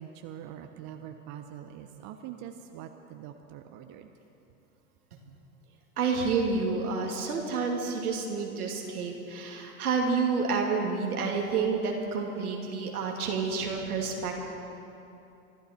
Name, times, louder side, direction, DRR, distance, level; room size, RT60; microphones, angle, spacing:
voice 1, 0.0-4.1, right 10 dB, 40° right, 6 dB, 0.9 m, -44 dB
voice 2, 6.0-14.3, right 4 dB, 80° right, 0 dB, 2.6 m, -29 dB
25.5 x 12.5 x 4.4 m, 2.9 s
hypercardioid pair, 90°, 44 cm